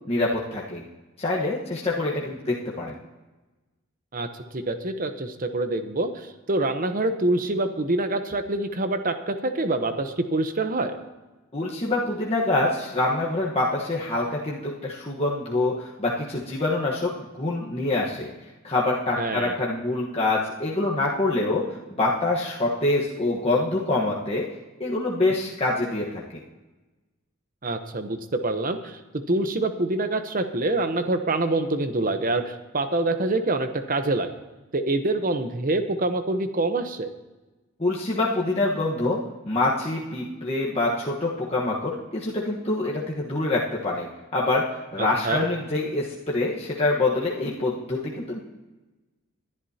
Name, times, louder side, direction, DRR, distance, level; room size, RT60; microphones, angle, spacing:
voice 1, 0.1-0.8 1.2-3.0 11.5-18.3 18.6-21.6 21.9-24.5 24.8-26.1 37.8-39.2 39.4-44.1 44.3-44.6 44.9-48.4, left 2 dB, 30° left, -4 dB, 1.2 m, -25 dB
voice 2, 4.5-11.0 19.2-19.6 27.6-29.0 29.3-34.3 34.7-37.1 45.0-45.5, right 2 dB, 40° right, 8 dB, 0.9 m, -26 dB
21.0 x 11.0 x 2.8 m, 1.1 s
head